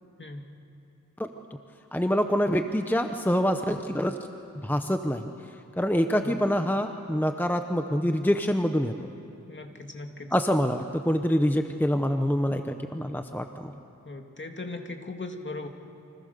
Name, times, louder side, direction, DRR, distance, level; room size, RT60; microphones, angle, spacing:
voice 1, 1.9-4.1 4.6-5.3 5.8-8.9 10.3-13.7, equal, 5° left, 6 dB, 0.9 m, -25 dB
voice 2, 6.1-6.4 9.5-10.3 14.0-15.7, left 3 dB, 35° left, 4 dB, 2.1 m, -38 dB
30.0 x 25.0 x 6.8 m, 2.8 s
wide cardioid pair, 110°, 31 cm